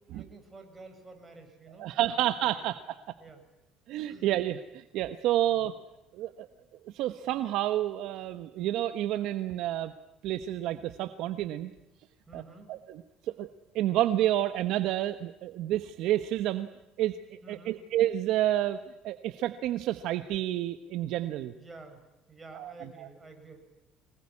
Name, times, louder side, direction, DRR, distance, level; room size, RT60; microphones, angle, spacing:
voice 1, 0.1-2.6 3.2-3.4 4.1-4.3 5.5-5.7 6.5-6.6 12.3-12.7 17.4-17.8 21.5-22.0 22.3-23.6, right 3 dB, 20° right, 5 dB, 6.9 m, -50 dB
voice 2, 1.8-3.0 3.9-5.8 6.1-6.5 6.9-9.9 10.2-11.7 12.3-12.4 12.7-13.5 13.7-16.7 17.0-17.2 17.5-21.5 22.5-23.1, right 13 dB, 70° right, 10 dB, 1.1 m, -29 dB
25.0 x 20.5 x 9.8 m, 0.95 s
cardioid pair, 115°, 0 cm